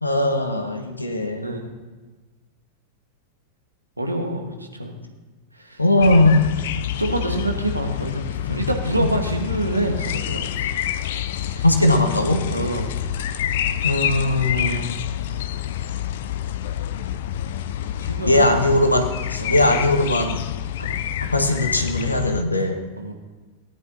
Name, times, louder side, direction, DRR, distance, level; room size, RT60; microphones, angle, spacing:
voice 1, 0.0-1.6 5.8-6.6 9.0-9.1 11.6-12.4 13.8-15.0 18.3-20.4 21.3-22.8, left 1 dB, 85° left, 6 dB, 1.3 m, -19 dB
voice 2, 4.0-5.0 5.5-5.8 7.0-10.8 11.3-11.6 12.5-12.9 18.0-18.6 19.4-19.7 20.8-21.1 23.0-23.1, right 1 dB, 85° right, 3 dB, 1.6 m, -27 dB
sound 1, 6.0-22.4, left 11 dB, 55° left, 0.4 m, -28 dB
17.5 x 10.5 x 2.8 m, 1.3 s
figure-of-eight pair, 90°, 0 cm